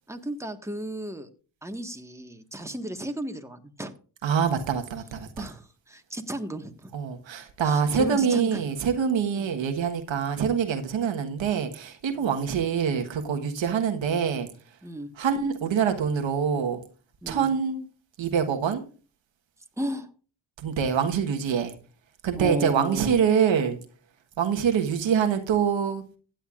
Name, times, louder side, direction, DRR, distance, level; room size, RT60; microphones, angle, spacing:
voice 1, 0.1-1.3 1.6-3.9 5.4-6.9 7.6-8.6 9.3-9.5 12.2-12.3 14.8-15.1 17.2-17.5 19.8-20.1 22.4-23.2, right 1 dB, 5° right, 1.5 m, -34 dB
voice 2, 4.2-5.5 6.9-14.5 15.2-16.8 17.3-17.8 18.2-18.8 20.6-21.7 22.2-23.8 24.4-26.0, right 7 dB, 85° right, 1.4 m, -25 dB
15.5 x 9.0 x 2.5 m
cardioid pair, 55°, 44 cm